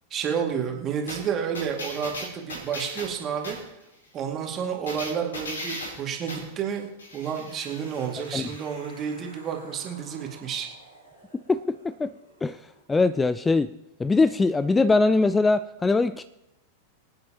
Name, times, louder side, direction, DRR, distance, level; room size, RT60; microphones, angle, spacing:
voice 1, 0.1-3.6 4.1-10.7, right 7 dB, 30° right, 2.3 m, -30 dB
sound 1, 1.1-3.7 4.9-6.5 7.0-12.2 12.5-12.6, equal, 70° left, 4.2 m, -40 dB
voice 2, 11.3-12.1 12.4-12.6 12.9-13.7 14.0-16.2, left 3 dB, 10° left, 0.3 m, -22 dB
23.5 x 9.3 x 3.0 m
figure-of-eight pair, 90°, 0 cm